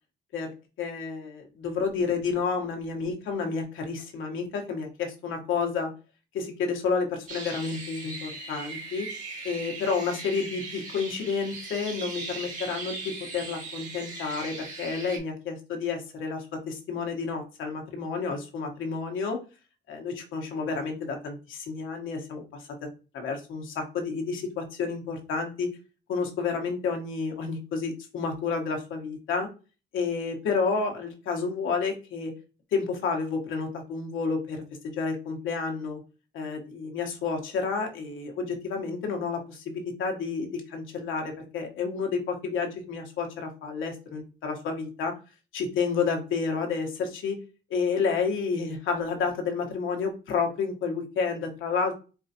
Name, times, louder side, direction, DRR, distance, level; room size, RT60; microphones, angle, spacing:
voice 1, 0.8-5.9 6.3-9.1 9.4-19.4 19.9-22.4 23.1-25.7 26.1-29.5 29.9-32.3 32.7-36.0 36.3-45.1 45.5-47.4 47.7-51.9, left 5 dB, 80° left, 3 dB, 1.2 m, -30 dB
sound 1, 7.3-15.2, right 3 dB, 40° right, 1.5 m, -39 dB
4.6 x 2.5 x 2.7 m, 0.32 s
cardioid pair, 90°, 20 cm